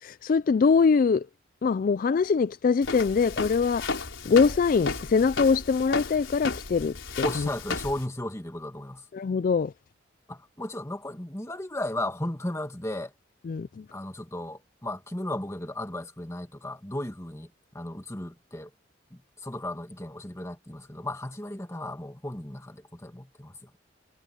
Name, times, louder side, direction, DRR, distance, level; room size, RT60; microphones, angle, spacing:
voice 1, 0.0-1.3 1.6-3.9 4.2-7.5 9.1-9.7 13.5-13.9, left 5 dB, 45° left, 0.3 m, -23 dB
Walk footsteps, 2.8-8.0, left 3 dB, 90° left, 4.5 m, -33 dB
voice 2, 7.2-9.1 10.3-13.1 13.9-18.7 19.1-23.7, left 1 dB, 15° left, 1.8 m, -35 dB
head